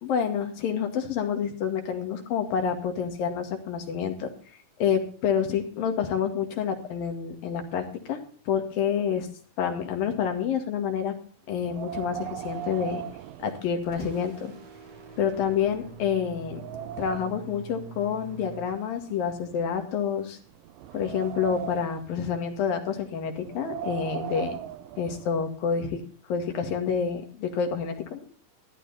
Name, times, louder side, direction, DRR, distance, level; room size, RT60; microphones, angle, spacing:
voice 1, 0.0-4.3 4.8-8.2 8.5-9.3 9.6-11.1 11.5-13.0 13.4-14.5 15.2-16.6 17.0-20.4 20.9-24.6 25.0-26.0 26.3-28.2, left 7 dB, 85° left, 5 dB, 3.8 m, -28 dB
Wind, 11.6-14.2 14.6-14.7 15.3-15.4 15.9-17.5 18.4-19.9 20.5-22.1 23.4-25.5, right 10 dB, 85° right, 2.6 m, -38 dB
sound 1, 12.4-13.5 13.8-18.7, right 4 dB, 50° right, 3.9 m, -46 dB
14.0 x 12.0 x 4.2 m, 0.43 s
omnidirectional pair, 4.0 m